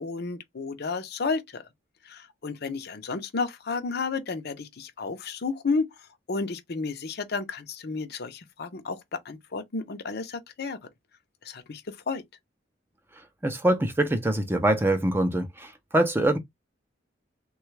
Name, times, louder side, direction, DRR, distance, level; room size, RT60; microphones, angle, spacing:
voice 1, 0.0-1.6 2.1-5.8 6.3-9.0 9.3-10.8 11.4-12.2, left 4 dB, 55° left, 0.6 m, -32 dB
voice 2, 13.4-16.4, right 1 dB, 10° right, 0.5 m, -24 dB
3.3 x 2.3 x 3.1 m
head